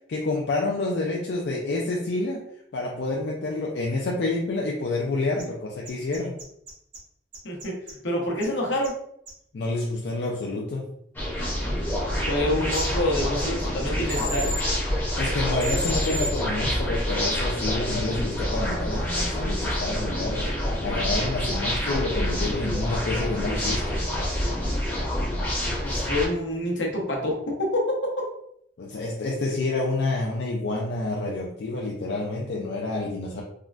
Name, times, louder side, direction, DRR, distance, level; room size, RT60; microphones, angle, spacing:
voice 1, 0.1-2.4 2.7-6.4 9.5-10.9 15.2-20.5 20.8-24.0 28.8-33.4, left 2 dB, 65° left, -2 dB, 0.4 m, -28 dB
sound 1, 5.4-5.5 5.8-7.0 7.3-7.9 8.4-8.5 8.8-8.9 9.3-9.4 12.7-12.8 14.1-14.6 15.6-16.3, equal, 90° right, 1.1 m, -32 dB
voice 2, 7.4-7.8 8.0-8.9 12.3-14.5 25.8-28.3, left 1 dB, 85° left, -1 dB, 0.9 m, -27 dB
sound 2, 11.1-26.3, equal, 10° left, 0.6 m, -27 dB
3.6 x 2.1 x 2.4 m, 0.73 s
head